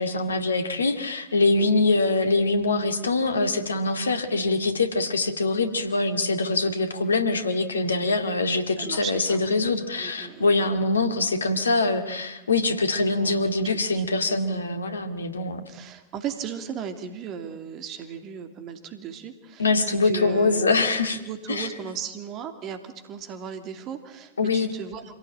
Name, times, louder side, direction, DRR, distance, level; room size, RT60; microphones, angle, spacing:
voice 1, 0.0-15.6 19.6-21.2 21.5-21.7 24.4-24.7, left 3 dB, 75° left, 8 dB, 2.2 m, -24 dB
voice 2, 8.8-9.4 10.0-10.7 13.2-13.4 13.6-13.8 14.5-14.6 15.7-20.8 21.2-25.2, right 7 dB, 35° right, 8 dB, 2.8 m, -36 dB
26.0 x 17.0 x 8.9 m, 1.0 s
figure-of-eight pair, 90°, 0 cm